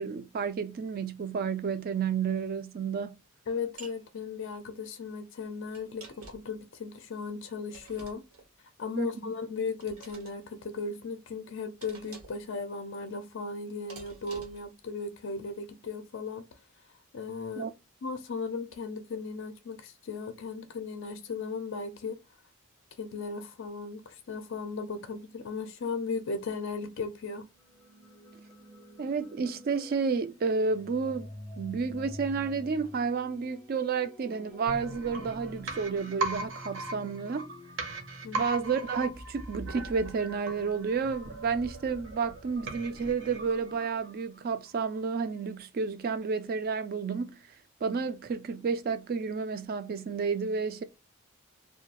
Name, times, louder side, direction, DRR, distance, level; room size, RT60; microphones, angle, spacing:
voice 1, 0.0-3.1 9.0-9.3 17.6-17.7 29.0-31.3 31.6-37.5 38.4-47.4 47.8-50.8, right 5 dB, 45° right, 0.3 m, -31 dB
voice 2, 3.5-8.2 8.8-16.4 17.1-17.7 18.0-22.2 23.0-27.5 38.2-38.4, left 4 dB, 60° left, 0.4 m, -36 dB
sound 1, 3.8-4.0 5.7-6.6 7.7-8.5 9.8-10.3 11.8-12.5 13.9-14.7, right 3 dB, 90° right, 1.1 m, -49 dB
sound 2, 27.4-39.3, left 1 dB, 5° left, 0.5 m, -49 dB
sound 3, 34.7-44.4 44.7-44.8, right 2 dB, 60° right, 0.7 m, -39 dB
2.3 x 2.2 x 2.8 m
head